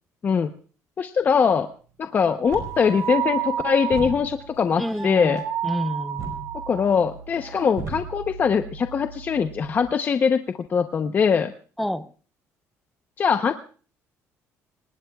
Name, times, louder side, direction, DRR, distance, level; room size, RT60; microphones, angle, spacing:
voice 1, 1.0-1.7 2.0-5.4 6.7-10.4 10.7-11.5 13.2-13.5, left 6 dB, 35° left, 0.8 m, -22 dB
sound 1, 2.4-9.9, right 4 dB, 60° right, 5.0 m, -39 dB
sound 2, 2.4-7.0 7.4-7.7, right 10 dB, 75° right, 3.0 m, -31 dB
voice 2, 4.8-6.5 11.8-12.1, equal, ahead, 0.7 m, -29 dB
26.0 x 20.5 x 2.4 m
cardioid pair, 140°, 6 cm